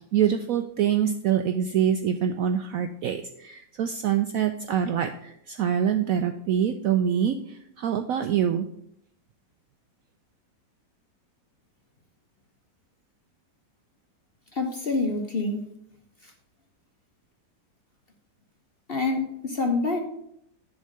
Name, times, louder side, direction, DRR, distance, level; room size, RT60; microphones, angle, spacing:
voice 1, 0.1-8.7, right 9 dB, 70° right, 7 dB, 0.8 m, -25 dB
voice 2, 14.5-15.6 16.2-16.3 18.9-20.0, left 3 dB, 45° left, 3 dB, 0.9 m, -26 dB
10.5 x 3.7 x 6.5 m, 0.74 s
omnidirectional pair, 1.9 m